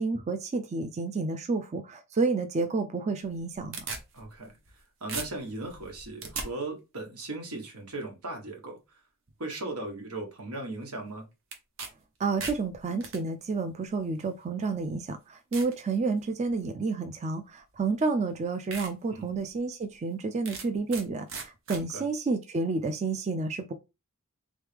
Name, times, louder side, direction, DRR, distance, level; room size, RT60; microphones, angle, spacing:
voice 1, 0.0-3.8 12.2-23.7, right 4 dB, 30° right, 0.3 m, -30 dB
sound 1, 3.3-4.8 5.1-6.5 11.5-11.9 12.2-13.2 14.1-14.2 14.8-14.9 15.5-15.8 16.3-16.6 17.8-17.9 18.3-18.4 18.7-18.9 19.3-19.4 20.5-21.0 21.3-21.8, right 4 dB, 60° right, 0.9 m, -38 dB
voice 2, 4.1-4.5 5.0-8.8 9.4-11.2 19.1-19.3 21.9-22.0, right 2 dB, 90° right, 1.5 m, -37 dB
3.6 x 3.1 x 3.4 m
head